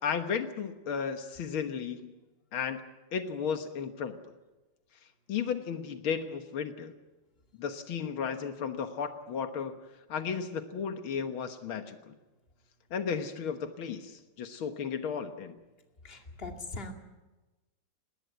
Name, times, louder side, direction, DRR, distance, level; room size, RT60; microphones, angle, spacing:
voice 1, 0.0-2.1 2.5-2.8 3.1-4.2 5.3-6.9 7.6-9.8 10.1-12.1 12.9-15.6, left 6 dB, 85° left, 8 dB, 2.2 m, -34 dB
voice 2, 16.0-16.9, left 3 dB, 30° left, 4 dB, 2.4 m, -40 dB
19.5 x 19.0 x 9.2 m, 1.1 s
omnidirectional pair, 2.2 m